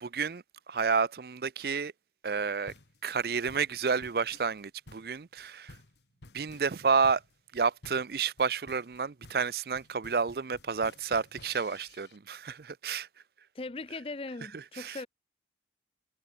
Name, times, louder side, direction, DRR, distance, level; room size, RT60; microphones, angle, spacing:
voice 1, 0.0-1.9 2.2-2.7 3.0-5.8 6.3-7.2 7.5-13.1 14.5-15.0, right 5 dB, 60° right, 0.5 m, -30 dB
sound 1, 2.7-12.2, left 2 dB, 80° left, 1.6 m, -54 dB
voice 2, 13.5-15.1, left 3 dB, 30° left, 0.6 m, -39 dB
head